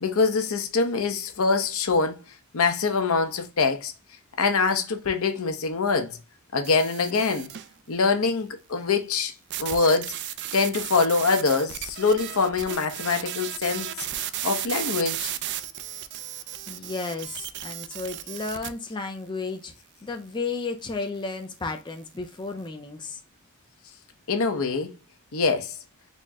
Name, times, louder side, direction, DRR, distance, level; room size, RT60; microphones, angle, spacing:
voice 1, 0.0-2.2 2.5-3.9 4.4-6.2 6.5-7.5 7.9-9.3 9.6-10.1 10.5-15.3 24.3-24.9 25.3-25.7, left 4 dB, 70° left, 0.7 m, -24 dB
sound 1, 6.6-7.7 9.5-18.7, right 11 dB, 50° right, 0.4 m, -34 dB
voice 2, 16.7-19.7 20.0-23.2, left 4 dB, 20° left, 0.4 m, -33 dB
4.1 x 2.1 x 3.4 m
head